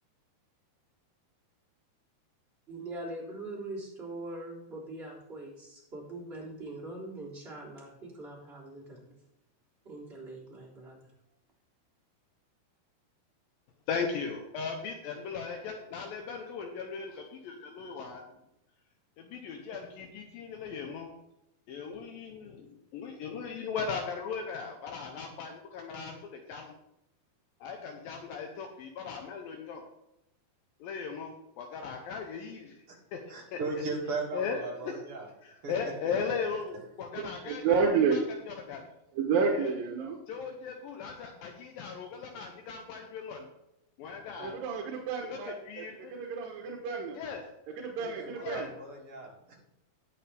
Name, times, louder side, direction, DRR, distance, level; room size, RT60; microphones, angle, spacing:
voice 1, 2.7-9.1 9.8-11.0, right 2 dB, 15° right, -6 dB, 3.7 m, -42 dB
voice 2, 13.9-18.3 19.2-21.1 21.7-26.8 27.6-29.9 30.8-32.8 33.1-33.6 34.3-35.0 35.4-38.8 39.5-39.7 40.3-43.5 44.0-44.6 45.2-46.2 47.1-47.4 48.4-48.7, left 5 dB, 75° left, 3 dB, 2.5 m, -38 dB
voice 3, 33.3-35.3 35.6-35.7 48.0-49.6, right 3 dB, 40° right, -2 dB, 2.8 m, -37 dB
voice 4, 37.2-38.2 39.2-40.1 44.4-45.8 46.1-47.2 47.8-48.7, right 5 dB, 70° right, 2 dB, 2.7 m, -30 dB
18.0 x 6.4 x 3.4 m, 0.85 s
omnidirectional pair, 4.5 m